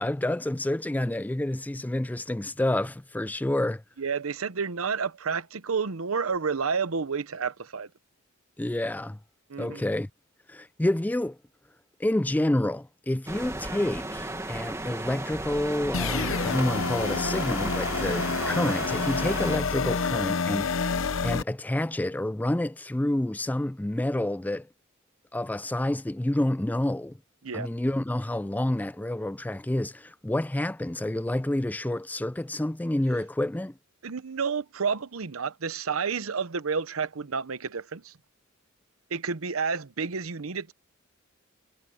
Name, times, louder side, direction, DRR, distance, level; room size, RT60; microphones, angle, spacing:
voice 1, 0.0-3.8 8.6-9.2 9.6-10.1 10.5-11.4 12.0-20.9 21.2-24.7 25.3-27.1 27.5-33.7, left 1 dB, 10° left, 0.3 m, -28 dB
voice 2, 4.0-7.9 9.5-9.8 27.4-27.7 34.0-38.1 39.1-40.7, right 5 dB, 80° right, 0.9 m, -30 dB
sound 1, 13.3-19.6, right 2 dB, 15° right, 1.8 m, -35 dB
sound 2, 15.9-21.4, left 4 dB, 65° left, 0.9 m, -28 dB
head